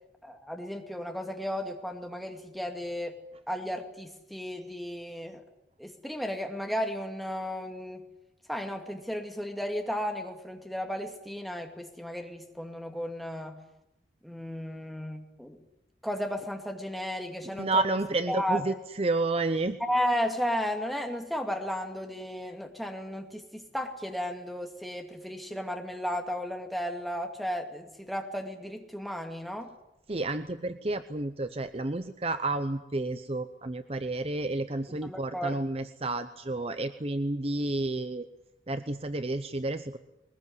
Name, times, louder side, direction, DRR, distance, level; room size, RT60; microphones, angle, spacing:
voice 1, 0.2-3.2 3.5-5.4 5.8-8.1 8.5-13.6 14.2-15.6 16.0-17.8 18.3-18.7 19.8-29.7 35.0-35.6, equal, ahead, 3 dB, 2.4 m, -34 dB
voice 2, 17.5-19.8 30.1-38.3 38.7-40.0, right 2 dB, 35° right, 10 dB, 0.8 m, -30 dB
21.5 x 21.0 x 9.6 m, 0.86 s
head